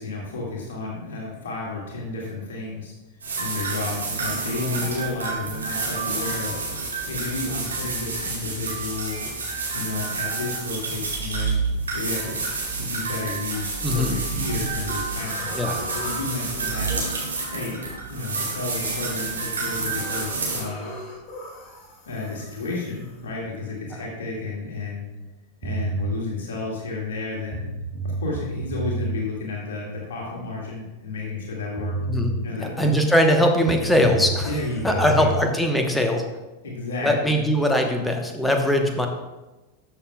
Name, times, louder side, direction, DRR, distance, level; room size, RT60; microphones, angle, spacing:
voice 1, 0.0-2.9 3.4-6.6 7.0-9.2 9.7-11.6 11.9-12.4 12.7-15.6 15.9-16.9 17.5-20.9 22.1-25.1 25.6-27.6 28.0-32.0 32.4-33.0 34.4-35.4 36.6-37.4, left 3 dB, 60° left, -3 dB, 2.0 m, -32 dB
sound 1, 3.2-20.6, right 4 dB, 70° right, 2.1 m, -29 dB
voice 2, 4.6-4.9 13.8-14.2 15.5-15.8 23.9-24.0 32.1-32.3 32.6-34.5 34.8-36.2 37.0-39.1, equal, 5° left, 3 dB, 1.1 m, -21 dB
sound 2, 14.3-14.7 15.1-23.7, left 1 dB, 30° left, 2.2 m, -41 dB
sound 3, 25.6-26.2 27.2-27.3 27.5-29.2 31.4-31.5 31.8-32.4 33.7-35.4, right 3 dB, 25° right, 0.9 m, -29 dB
12.5 x 6.7 x 2.3 m, 1.1 s
figure-of-eight pair, 90°, 0 cm